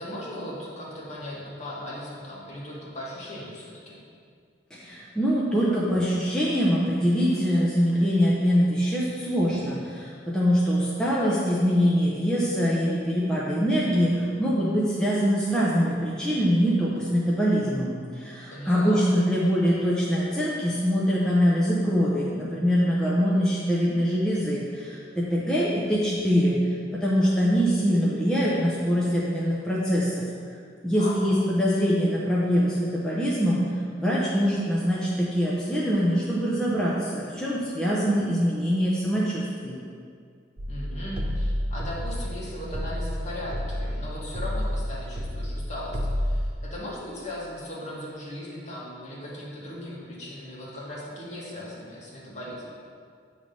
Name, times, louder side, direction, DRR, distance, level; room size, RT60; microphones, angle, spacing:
voice 1, 0.0-4.0 18.5-19.1 31.0-31.3 40.7-52.7, left 1 dB, 40° left, -6 dB, 1.5 m, -38 dB
voice 2, 4.7-26.6 26.9-30.2 30.8-33.6 34.0-39.8, equal, 5° left, -7 dB, 0.7 m, -24 dB
sound 1, 40.6-46.5, equal, 35° right, 0.5 m, -30 dB
8.3 x 3.2 x 5.2 m, 2.2 s
head